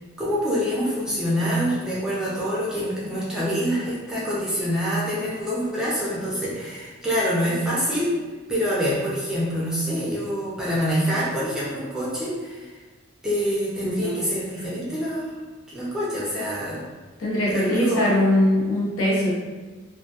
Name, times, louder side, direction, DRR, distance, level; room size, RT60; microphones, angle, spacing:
voice 1, 0.2-8.1 8.5-12.7 13.2-15.3 15.7-16.8 17.5-18.1, equal, 5° right, -8 dB, 0.4 m, -26 dB
voice 2, 17.2-19.3, left 1 dB, 80° left, -6 dB, 0.8 m, -21 dB
2.1 x 2.1 x 2.7 m, 1.3 s
head